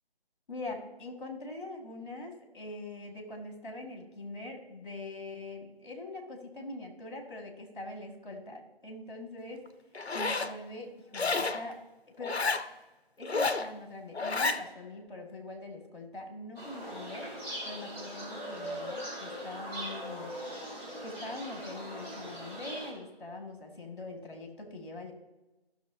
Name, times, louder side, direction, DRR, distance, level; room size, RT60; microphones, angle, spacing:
voice 1, 0.5-9.6 10.1-11.8 12.2-12.4 13.2-17.3 17.6-20.3 21.0-25.1, left 2 dB, 55° left, 3 dB, 2.1 m, -43 dB
Zipper (clothing), 9.9-10.5 11.1-11.6 12.2-12.7 13.2-13.7 14.1-14.6, left 3 dB, 90° left, 0.7 m, -30 dB
sound 1, 16.5-22.9, equal, 5° right, 2.0 m, -40 dB
14.5 x 6.4 x 2.8 m, 1.1 s
figure-of-eight pair, 160°, 31 cm